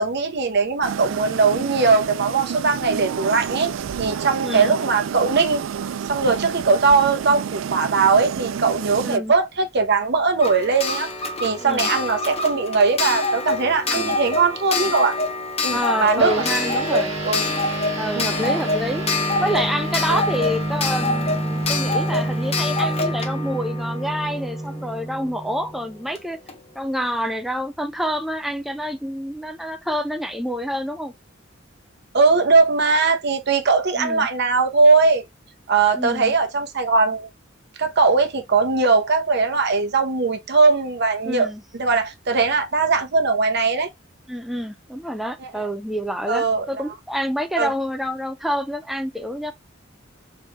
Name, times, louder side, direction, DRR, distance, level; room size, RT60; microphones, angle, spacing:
voice 1, 0.0-3.7 4.0-5.6 6.1-11.1 11.4-15.2 15.6-16.4 16.9-17.4 18.1-18.5 20.1-20.2 32.1-35.2 35.7-37.3 37.8-41.5 41.8-43.9 45.4-45.5 46.3-46.7 47.6-47.7, right 4 dB, 60° right, 0.8 m, -20 dB
sound 1, 0.8-9.2, right 7 dB, 75° right, 0.3 m, -30 dB
voice 2, 4.4-4.8 9.0-9.3 11.6-11.9 13.9-14.2 15.7-17.1 18.0-19.0 19.4-26.4 26.8-31.1 34.0-34.3 35.9-36.3 41.3-41.6 44.3-49.5, equal, ahead, 0.4 m, -27 dB
Clock, 10.4-25.0 26.1-26.2 26.5-26.6, left 3 dB, 30° left, 0.8 m, -26 dB
sound 2, 16.2-25.9, right 1 dB, 30° right, 1.5 m, -28 dB
3.8 x 3.2 x 2.3 m
head